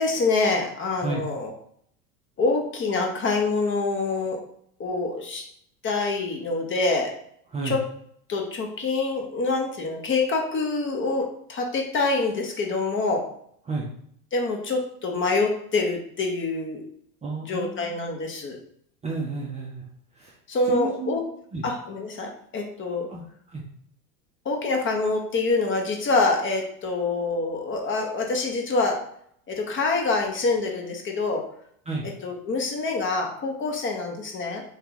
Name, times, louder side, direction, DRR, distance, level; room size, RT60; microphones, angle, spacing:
voice 1, 0.0-1.5 2.4-4.4 4.8-5.4 5.8-7.1 7.6-7.8 8.3-13.3 14.3-16.8 17.5-18.6 20.5-21.2 21.6-23.1 24.4-29.0 29.5-31.5 32.2-34.6, left 3 dB, 25° left, 2 dB, 0.8 m, -26 dB
voice 2, 17.2-18.0 19.0-19.9 20.1-20.4 20.6-21.2 21.5-21.7 23.1-23.6 31.9-32.1, right 3 dB, 15° right, -4 dB, 0.5 m, -32 dB
3.0 x 2.8 x 3.7 m, 0.66 s
hypercardioid pair, 95°, 46 cm